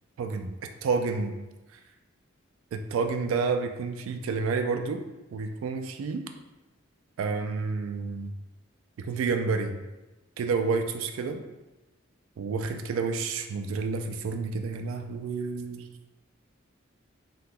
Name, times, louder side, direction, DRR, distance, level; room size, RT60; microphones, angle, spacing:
voice 1, 0.2-0.5 0.8-1.4 2.7-5.0 5.3-6.2 7.2-8.3 9.0-9.8 10.4-11.4 12.4-15.8, right 4 dB, 85° right, 6 dB, 0.3 m, -29 dB
2.8 x 2.2 x 3.7 m, 1.1 s
head